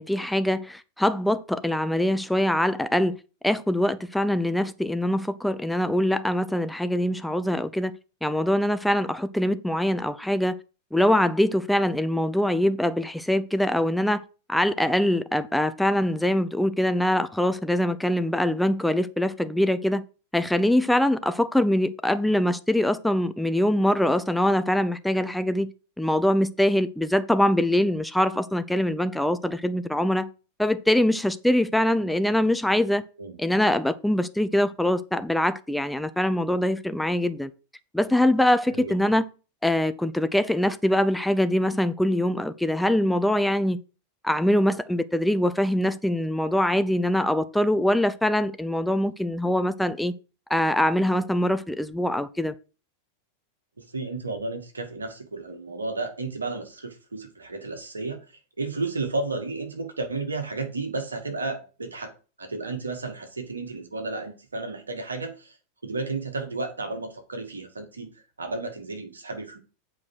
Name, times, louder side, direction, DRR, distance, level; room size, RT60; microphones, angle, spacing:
voice 1, 0.0-3.2 3.4-7.9 8.2-10.5 10.9-14.2 14.5-20.0 20.3-25.7 26.0-30.3 30.6-33.0 33.4-37.5 37.9-39.2 39.6-43.8 44.2-50.1 50.5-52.5, left 1 dB, 5° left, 0.7 m, -23 dB
voice 2, 53.8-58.3 58.6-62.1 62.4-65.6 65.8-69.6, right 3 dB, 75° right, 2.0 m, -33 dB
8.3 x 4.9 x 6.3 m
figure-of-eight pair, 90°, 0 cm